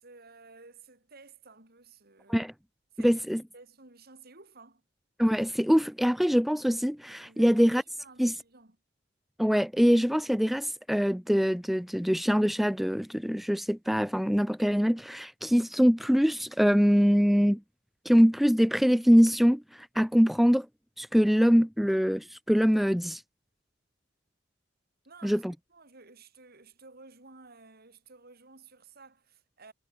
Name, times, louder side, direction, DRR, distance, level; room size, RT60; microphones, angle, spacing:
voice 1, 0.0-2.5 2.9-3.2 3.5-4.8 7.2-8.8 25.1-25.4 25.7-29.7, right 3 dB, 55° right, 4.1 m, -53 dB
voice 2, 3.0-3.4 5.2-7.8 8.2-8.3 9.4-17.6 18.1-20.7 21.0-23.2 25.2-25.5, equal, ahead, 0.4 m, -23 dB
head